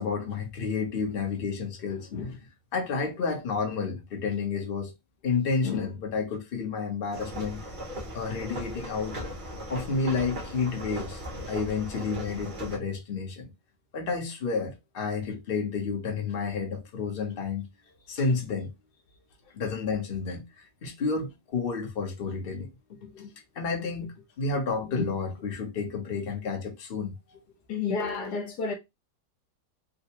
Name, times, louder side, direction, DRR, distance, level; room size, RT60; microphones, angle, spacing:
voice 1, 0.0-4.9 5.2-7.6 8.1-9.2 9.7-13.5 13.9-17.7 18.1-18.7 19.5-20.4 20.8-27.1, left 4 dB, 40° left, 0.8 m, -31 dB
sound 1, 7.1-12.8, equal, 40° right, 0.7 m, -38 dB
voice 2, 27.7-28.7, left 4 dB, 65° left, 1.4 m, -30 dB
3.7 x 2.3 x 2.8 m
omnidirectional pair, 2.0 m